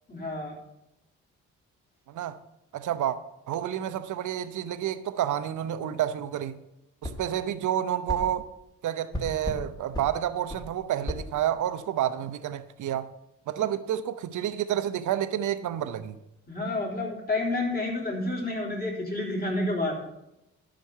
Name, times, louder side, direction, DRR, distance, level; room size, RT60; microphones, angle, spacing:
voice 1, 0.1-0.6 16.5-20.0, left 2 dB, 25° left, 3.8 m, -29 dB
voice 2, 2.1-2.4 2.7-3.2 3.5-6.6 7.0-8.5 8.8-13.1 13.5-16.2, right 11 dB, 60° right, 0.8 m, -29 dB
sound 1, 7.0-7.2 8.1-8.2 9.1-9.6 9.9-10.1 10.5-10.6 11.1-11.2, left 1 dB, 10° left, 2.1 m, -33 dB
11.5 x 5.2 x 7.2 m
supercardioid pair, 55°, 34 cm